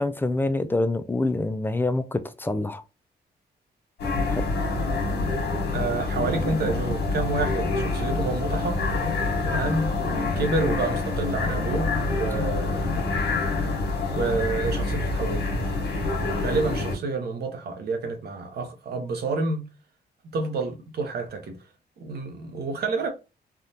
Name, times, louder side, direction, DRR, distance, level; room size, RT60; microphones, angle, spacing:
voice 1, 0.0-2.8 4.2-4.4, left 2 dB, 10° left, 0.3 m, -26 dB
sound 1, 4.0-16.9, left 3 dB, 80° left, 1.3 m, -26 dB
voice 2, 5.7-8.8 9.4-13.1 14.1-15.5 16.4-19.6 20.3-21.6 22.0-23.1, right 3 dB, 70° right, 0.9 m, -29 dB
3.5 x 2.4 x 2.7 m
cardioid pair, 110°, 17 cm